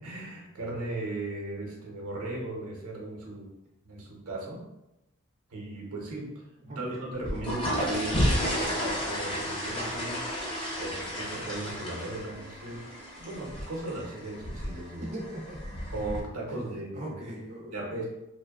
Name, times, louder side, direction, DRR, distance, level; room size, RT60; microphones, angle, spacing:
voice 1, 0.0-3.5 3.8-4.6 5.5-6.4 6.8-10.2 10.8-12.8 13.2-15.1 15.9-17.2 17.7-18.1, right 2 dB, 85° right, -2 dB, 0.7 m, -37 dB
voice 2, 6.6-7.0 15.1-15.7 16.5-17.7, right 1 dB, 30° right, -3 dB, 0.4 m, -40 dB
sound 1, 7.1-16.2, equal, 25° left, 0.6 m, -32 dB
2.6 x 2.1 x 2.3 m, 0.92 s
head